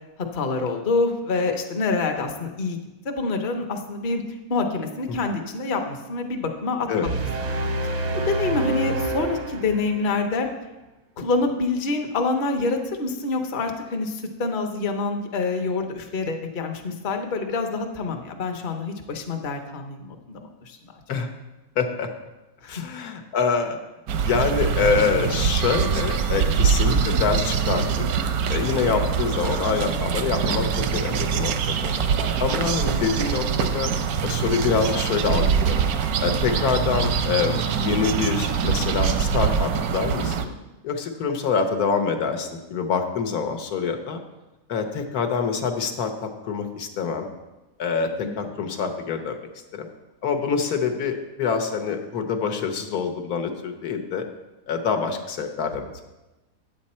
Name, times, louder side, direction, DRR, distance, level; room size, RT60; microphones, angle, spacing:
voice 1, 0.3-2.8 3.0-4.2 4.5-6.9 7.6-10.5 11.2-20.8 22.6-22.8 32.9-33.0 48.2-48.7, left 3 dB, 40° left, 4 dB, 0.8 m, -26 dB
sound 1, 7.0-10.2, right 2 dB, 45° right, 0.5 m, -27 dB
voice 2, 21.8-22.1 22.7-23.8 24.2-28.1 28.5-32.0 32.4-33.9 34.2-35.9 36.2-40.5 40.8-44.2 44.7-47.3 47.8-49.4 49.7-49.9 50.2-54.2 54.7-55.8, left 6 dB, 85° left, 5 dB, 1.4 m, -25 dB
sound 2, 24.1-40.5, right 7 dB, 85° right, 1.1 m, -24 dB
9.0 x 7.7 x 4.3 m, 1.0 s
omnidirectional pair, 1.6 m